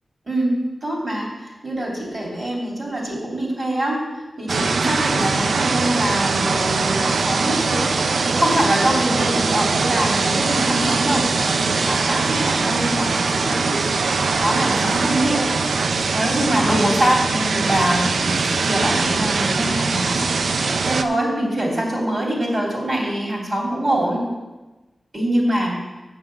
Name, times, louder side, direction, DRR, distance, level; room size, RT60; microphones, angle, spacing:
voice 1, 0.3-4.0 4.4-13.8 14.1-15.5 16.1-20.2 20.5-24.2 25.1-25.8, right 1 dB, 45° right, -2 dB, 3.3 m, -24 dB
sound 1, 4.5-21.0, right 4 dB, 80° right, 0.5 m, -21 dB
7.4 x 7.0 x 7.1 m, 1.1 s
wide cardioid pair, 75°, 0 cm